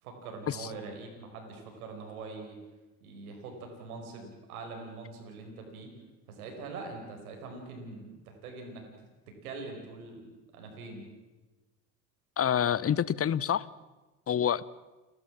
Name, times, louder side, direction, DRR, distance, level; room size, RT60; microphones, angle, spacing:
voice 1, 0.0-2.6 3.0-5.9 6.3-8.8 9.4-11.0, right 3 dB, 85° right, 3 dB, 4.9 m, -43 dB
voice 2, 12.4-13.7 14.3-14.7, left 9 dB, 35° left, 20 dB, 0.9 m, -27 dB
30.0 x 12.5 x 7.4 m, 1.1 s
hypercardioid pair, 65°, 42 cm